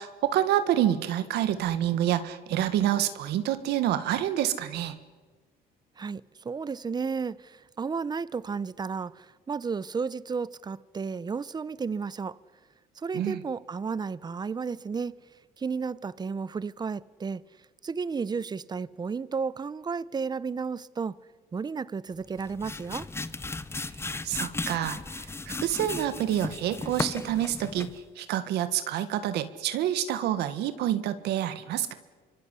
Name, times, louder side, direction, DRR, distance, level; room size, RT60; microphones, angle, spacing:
voice 1, 0.0-5.0 13.1-13.4 24.2-25.3 25.6-31.9, right 11 dB, 80° right, 1.8 m, -27 dB
voice 2, 6.0-12.4 13.0-15.1 15.6-17.4 17.8-21.2 21.5-23.1, right 5 dB, 25° right, 0.8 m, -33 dB
sound 1, 22.2-28.1, left 3 dB, 15° left, 0.9 m, -36 dB
27.0 x 24.5 x 8.3 m
cardioid pair, 110°, 17 cm